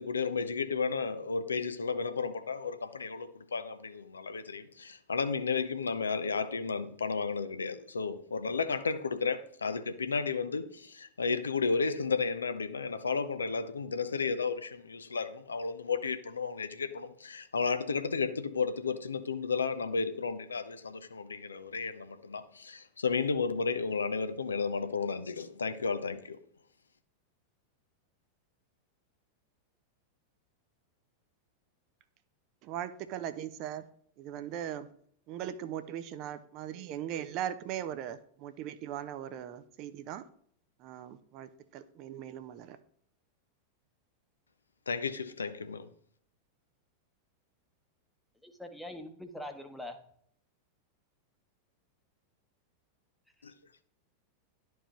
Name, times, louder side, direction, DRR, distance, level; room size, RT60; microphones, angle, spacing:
voice 1, 0.0-26.4 44.9-45.9 53.4-53.5, left 5 dB, 75° left, 0.5 m, -33 dB
voice 2, 32.6-33.8 34.2-34.9 35.3-40.2 40.8-42.8, right 10 dB, 40° right, 0.5 m, -39 dB
voice 3, 48.4-50.0, left 1 dB, ahead, 0.9 m, -43 dB
11.0 x 4.6 x 3.0 m
figure-of-eight pair, 90°, 0 cm